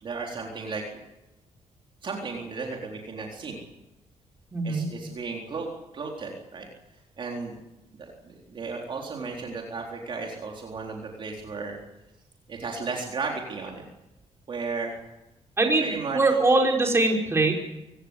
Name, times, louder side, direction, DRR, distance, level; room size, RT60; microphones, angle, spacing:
voice 1, 0.0-1.0 2.0-3.6 4.6-5.7 5.9-6.7 7.2-7.6 8.0-11.8 12.5-13.8 14.5-15.0 15.8-16.2, right 4 dB, 45° right, 0 dB, 4.0 m, -34 dB
voice 2, 4.5-4.9 15.6-17.5, right 2 dB, 20° right, 1 dB, 5.3 m, -22 dB
25.0 x 17.5 x 8.2 m, 0.98 s
cardioid pair, 120°, 12 cm